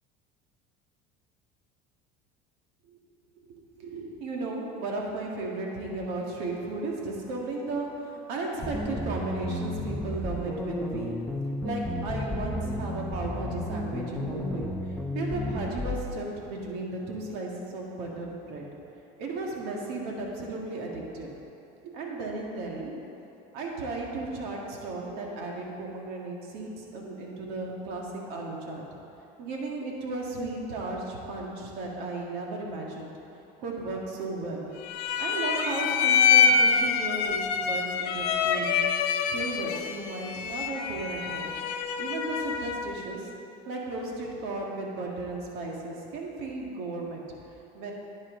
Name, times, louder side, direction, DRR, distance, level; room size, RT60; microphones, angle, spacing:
voice 1, 3.4-11.1 11.6-18.6 19.2-21.3 21.8-22.9 23.5-28.8 29.4-33.1 33.6-34.7 35.2-38.8 39.3-41.5 42.0-43.3 43.7-47.2 47.7-47.9, right 2 dB, 65° right, -1 dB, 1.9 m, -35 dB
sound 1, 8.6-16.0, left 1 dB, 5° left, 0.8 m, -33 dB
sound 2, 34.8-42.9, left 6 dB, 65° left, 0.8 m, -26 dB
11.0 x 9.6 x 3.9 m, 3.0 s
cardioid pair, 135°, 17 cm